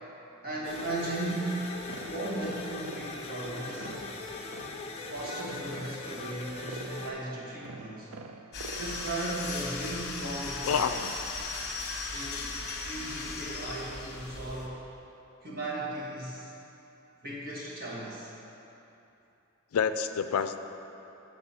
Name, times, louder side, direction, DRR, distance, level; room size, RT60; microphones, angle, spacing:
voice 1, 0.4-4.1 5.0-8.1 8.8-10.9 12.1-12.6 12.8-14.8 15.4-16.5 17.2-18.3, right 1 dB, 45° right, -5 dB, 1.5 m, -36 dB
sound 1, 0.6-7.1, left 3 dB, 30° left, 0.6 m, -41 dB
sound 2, 1.9-9.6, right 4 dB, 70° right, 0.4 m, -47 dB
sound 3, 8.5-14.7, left 3 dB, 50° left, 0.9 m, -37 dB
voice 2, 10.7-11.2 19.7-20.6, left 7 dB, 80° left, 10 dB, 0.4 m, -28 dB
7.1 x 6.8 x 4.3 m, 2.9 s
head